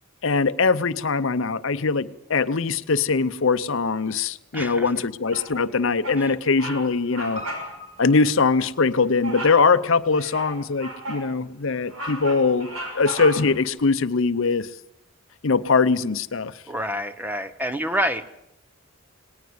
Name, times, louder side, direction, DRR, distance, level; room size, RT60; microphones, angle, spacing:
voice 1, 0.2-7.4 8.0-12.7 12.9-14.7 15.4-16.5, left 4 dB, 65° left, 0.7 m, -22 dB
voice 2, 4.5-4.9 6.2-6.3 16.7-18.2, equal, 10° right, 0.7 m, -27 dB
Bird vocalization bird call bird song, 5.3-5.7 6.0-6.3 6.5-6.8 7.1-7.7 8.0-8.2 9.2-9.6 10.1-11.3 11.7-13.6, right 1 dB, 80° right, 6.2 m, -34 dB
Piano, 7.3-11.9 12.1-12.2, left 2 dB, 30° right, 5.2 m, -43 dB
19.5 x 19.0 x 7.9 m
head